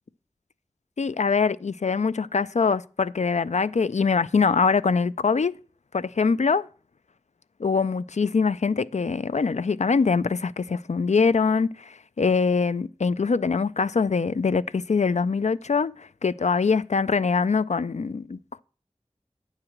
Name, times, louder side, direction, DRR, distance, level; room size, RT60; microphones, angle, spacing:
voice 1, 1.0-5.5 5.9-6.7 7.6-18.6, left 5 dB, 90° left, 0.4 m, -23 dB
9.7 x 4.9 x 7.2 m
wide cardioid pair, 40°, 11 cm